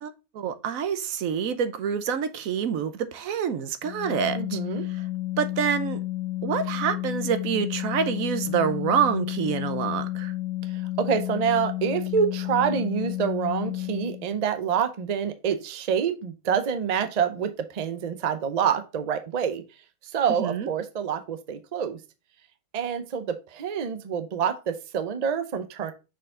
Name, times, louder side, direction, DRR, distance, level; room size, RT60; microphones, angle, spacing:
voice 1, 0.0-4.6 5.4-6.0 6.4-10.3 20.4-20.7, right 7 dB, 80° right, 1.1 m, -27 dB
Organ, 3.8-14.4, left 16 dB, 90° left, 1.1 m, -31 dB
voice 2, 4.3-4.8 11.0-19.6 20.1-22.0 22.7-25.9, right 7 dB, 40° right, 0.6 m, -27 dB
6.2 x 4.7 x 3.7 m
omnidirectional pair, 1.4 m